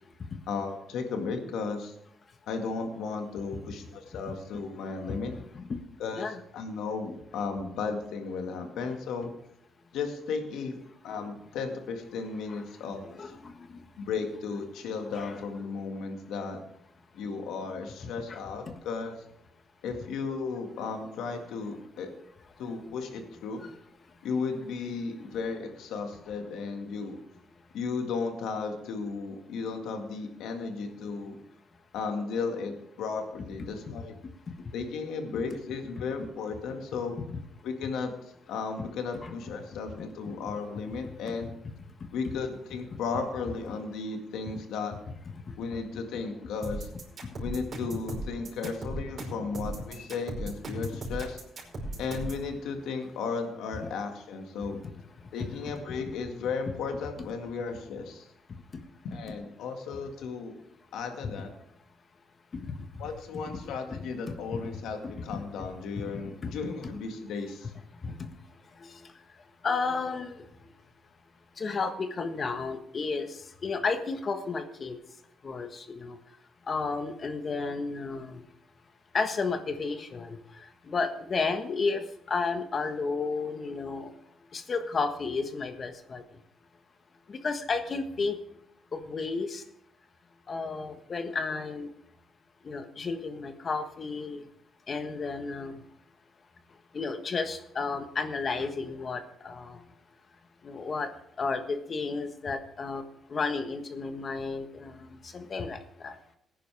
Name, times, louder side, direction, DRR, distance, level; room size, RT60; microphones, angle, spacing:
voice 1, 0.5-1.9 2.5-5.3 6.0-6.3 6.5-9.3 9.9-10.8 11.0-13.3 14.0-16.6 17.1-19.2 19.8-22.1 22.6-23.6 24.2-27.2 27.7-31.4 31.9-34.2 34.7-37.2 37.6-38.1 38.5-41.5 42.1-45.0 45.6-46.9 47.4-51.4 52.0-54.8 55.3-58.3 59.0-60.6 60.9-61.5 63.0-67.7, left 4 dB, 85° left, 4 dB, 2.0 m, -35 dB
voice 2, 13.0-13.8 15.1-15.4 18.3-18.4 23.6-23.7 37.3-37.4 39.2-39.3 41.4-41.5 49.9-50.1 50.8-51.0 55.4-55.5 62.6-62.8 63.5-64.6 65.0-65.4 66.0-66.1 66.4-66.5 68.0-68.2 68.8-69.1 69.6-70.4 71.6-75.0 75.4-76.2 76.7-78.4 79.1-80.4 80.9-82.0 82.3-84.1 84.5-86.2 87.3-88.4 88.9-89.6 90.5-91.9 92.6-94.4 94.9-95.8 96.9-99.8 100.6-101.1 101.4-103.0 103.3-106.2, left 4 dB, 45° left, 8 dB, 1.4 m, -32 dB
sound 1, 46.6-52.4, right 1 dB, 50° right, 5.1 m, -37 dB
18.0 x 10.0 x 3.5 m, 0.76 s
cardioid pair, 90°, 0 cm